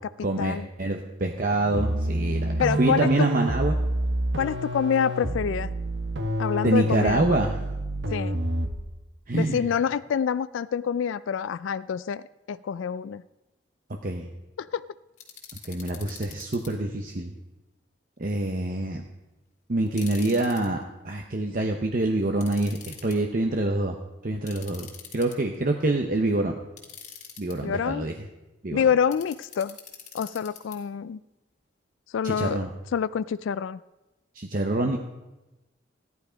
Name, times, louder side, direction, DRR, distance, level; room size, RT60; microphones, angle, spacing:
voice 1, 0.2-3.8 6.6-7.6 9.3-9.7 14.0-14.3 15.7-17.3 18.2-19.0 19.7-24.0 24.2-24.9 25.1-26.6 27.4-28.1 28.6-28.8 32.2-32.7 34.4-35.0, right 2 dB, 45° right, 3 dB, 0.9 m, -26 dB
sound 1, 1.7-8.9, right 1 dB, 70° right, 1.2 m, -28 dB
voice 2, 2.6-3.1 4.4-5.7 6.4-7.4 8.1-8.4 9.3-13.2 14.6-14.8 27.6-28.1 28.7-29.8 30.1-31.2 32.1-32.6 32.9-33.8, left 7 dB, 85° left, 16 dB, 0.3 m, -27 dB
sound 2, 15.2-16.7 19.9-20.7 22.4-23.2 24.5-25.6 26.8-27.5 29.1-30.8, left 7 dB, 40° left, 2.3 m, -44 dB
14.5 x 11.0 x 5.1 m, 1.0 s
head